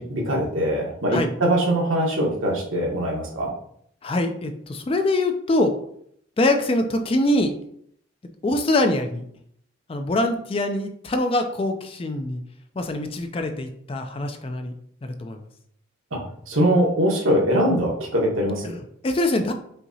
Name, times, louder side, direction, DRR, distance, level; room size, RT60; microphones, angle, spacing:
voice 1, 0.0-3.5 16.1-16.2 16.5-18.8, equal, 75° right, -1 dB, 1.2 m, -22 dB
voice 2, 4.0-5.7 6.4-7.5 8.4-9.3 9.9-12.4 12.8-14.7 15.0-15.4 18.6-19.5, left 1 dB, 25° left, 6 dB, 0.3 m, -24 dB
5.6 x 2.8 x 2.7 m, 0.67 s
head